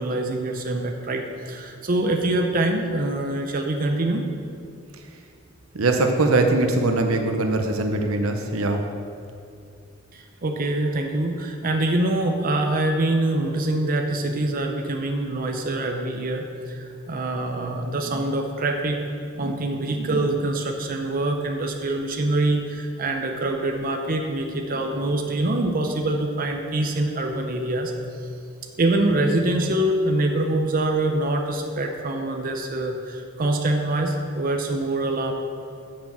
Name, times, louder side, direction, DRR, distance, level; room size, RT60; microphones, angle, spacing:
voice 1, 0.0-4.2 10.1-16.4 16.7-19.0 19.4-27.9 28.8-35.3, right 2 dB, 45° right, 3 dB, 0.6 m, -24 dB
voice 2, 5.7-8.8, right 2 dB, 85° right, 4 dB, 0.9 m, -21 dB
6.6 x 5.9 x 7.4 m, 2.5 s
head